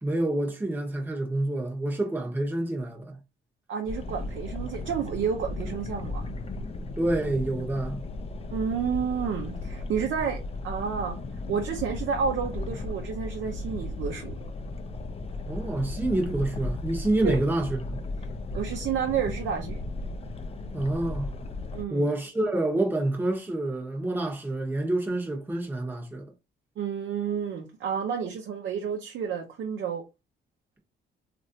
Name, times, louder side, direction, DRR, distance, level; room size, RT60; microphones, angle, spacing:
voice 1, 0.0-3.2 7.0-8.0 15.5-18.0 20.7-21.3 21.9-26.3, right 1 dB, 10° right, 0.9 m, -28 dB
voice 2, 3.7-6.3 8.5-11.2 11.5-14.3 17.2-17.4 18.5-19.8 21.7-22.1 26.8-30.0, right 7 dB, 70° right, 0.7 m, -30 dB
sound 1, 3.9-21.8, left 2 dB, 30° left, 0.5 m, -35 dB
3.1 x 2.5 x 2.7 m
cardioid pair, 90°, 20 cm